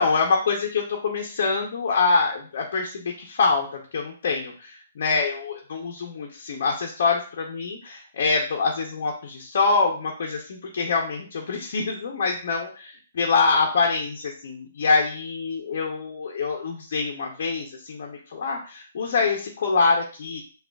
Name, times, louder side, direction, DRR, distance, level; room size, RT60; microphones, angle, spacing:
voice 1, 0.0-20.4, left 4 dB, 60° left, 0 dB, 0.7 m, -25 dB
5.0 x 2.4 x 2.4 m, 0.39 s
hypercardioid pair, 160°, 0 cm